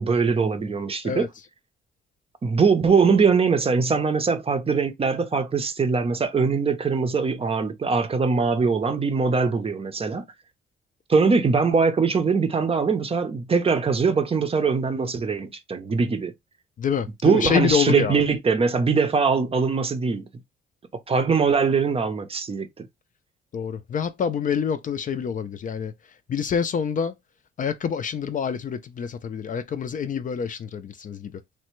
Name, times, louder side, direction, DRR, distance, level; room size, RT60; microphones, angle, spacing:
voice 1, 0.0-1.3 2.4-10.3 11.1-16.3 17.2-20.3 21.1-22.9, right 5 dB, 30° right, 0.5 m, -22 dB
voice 2, 1.0-1.5 16.8-18.2 23.5-25.9 26.3-27.1 27.6-31.4, left 7 dB, 40° left, 0.4 m, -26 dB
3.2 x 2.1 x 3.0 m
cardioid pair, 90°, 20 cm